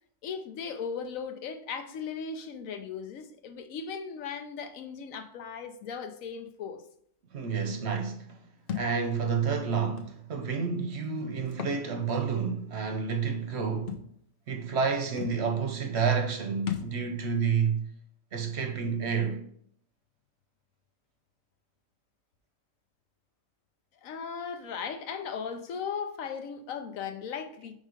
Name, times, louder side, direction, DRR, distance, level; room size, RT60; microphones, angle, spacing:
voice 1, 0.2-6.8 24.0-27.7, left 6 dB, 75° left, 1.1 m, -37 dB
voice 2, 7.3-8.4 8.7-14.0 14.5-17.9 18.3-19.4, right 6 dB, 60° right, 0.9 m, -29 dB
Thump thud, 8.7-8.9 10.0-10.1 11.5-11.8 12.2-12.3 13.9-14.1 14.9-15.0 15.2-15.4 16.7-17.0, left 9 dB, 55° left, 0.7 m, -35 dB
5.1 x 3.7 x 5.0 m
omnidirectional pair, 1.4 m